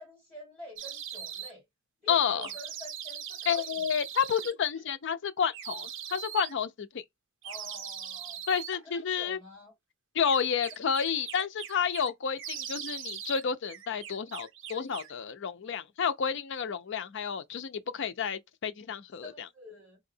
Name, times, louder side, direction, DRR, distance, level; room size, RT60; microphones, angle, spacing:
voice 1, 0.0-1.6 2.0-3.9 4.7-4.8 7.4-8.4 8.7-9.7 19.2-20.0, left 1 dB, ahead, 2.6 m, -48 dB
sound 1, 0.8-1.5 2.4-4.5 5.5-6.5 7.4-8.8 10.2-12.1 12.4-13.4 13.7-15.2, right 9 dB, 65° right, 0.7 m, -41 dB
voice 2, 2.1-2.4 3.5-7.0 8.5-9.4 10.1-19.5, left 7 dB, 60° left, 0.5 m, -30 dB
3.8 x 2.7 x 2.6 m
head